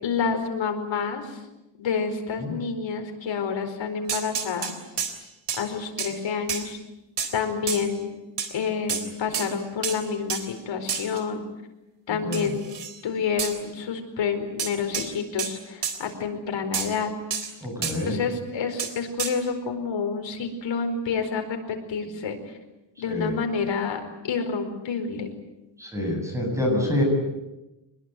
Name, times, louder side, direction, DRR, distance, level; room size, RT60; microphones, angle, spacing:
voice 1, 0.0-1.4 1.8-4.7 5.6-6.8 7.3-8.2 8.5-11.4 12.1-12.6 13.0-17.1 18.1-22.4 23.0-25.4, left 5 dB, 90° left, 5 dB, 4.7 m, -28 dB
sound 1, 4.1-5.1 5.5-5.7 6.0-6.1 6.5-6.6 7.2-7.3 7.7-7.8 8.4-8.5 8.9-9.0 9.3-9.5 9.8-10.0 10.3-10.4 10.9-11.2 12.3-13.0 13.4-13.6 14.6-15.1 15.4-15.5 15.8-16.0 16.7-16.9 17.3-17.5 17.8-18.0 18.8-18.9 19.2-19.3, right 7 dB, 70° right, 3.7 m, -29 dB
voice 2, 17.6-18.1 23.0-23.3 25.8-27.0, left 1 dB, 5° right, 1 dB, 7.8 m, -26 dB
25.5 x 21.5 x 9.2 m, 0.99 s
wide cardioid pair, 180°, 44 cm